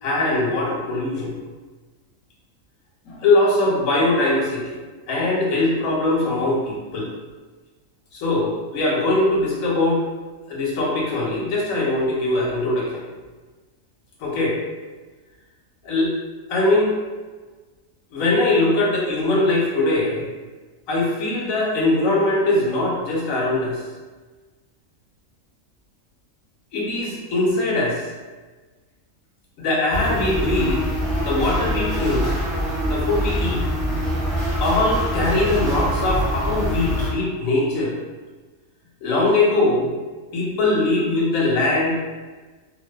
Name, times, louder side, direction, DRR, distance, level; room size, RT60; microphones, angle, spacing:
voice 1, 0.0-1.3 3.1-4.8 5.1-7.1 8.1-10.0 10.5-13.0 14.2-14.6 15.9-16.1 16.5-16.9 18.1-20.2 20.9-23.8 26.7-28.0 29.6-30.8 31.2-32.3 32.8-33.6 34.6-37.9 39.0-39.9 40.3-42.0, left 2 dB, 85° left, -4 dB, 1.1 m, -21 dB
sound 1, 29.9-37.1, equal, ahead, 0.4 m, -24 dB
2.4 x 2.2 x 2.2 m, 1.3 s
omnidirectional pair, 1.4 m